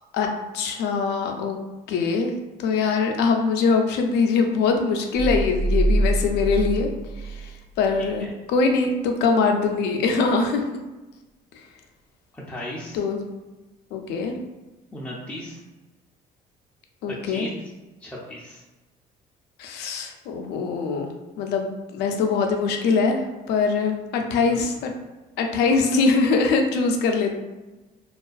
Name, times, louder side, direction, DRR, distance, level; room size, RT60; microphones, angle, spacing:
voice 1, 0.5-1.6 1.9-2.3 2.6-6.9 7.2-7.5 7.8-10.6 12.9-13.2 13.9-14.4 17.0-17.5 19.6-21.1 21.4-23.2 23.5-24.9 25.4-27.4, left 4 dB, 85° left, 4 dB, 0.4 m, -22 dB
sound 1, 5.1-7.7 8.0-8.2, right 1 dB, 80° right, 0.5 m, -24 dB
voice 2, 8.0-8.3 12.3-13.0 14.9-15.6 17.1-17.7 18.0-18.6 24.3-24.7, left 1 dB, 10° left, -5 dB, 0.4 m, -36 dB
2.3 x 2.2 x 2.4 m, 1.1 s
cardioid pair, 110°, 17 cm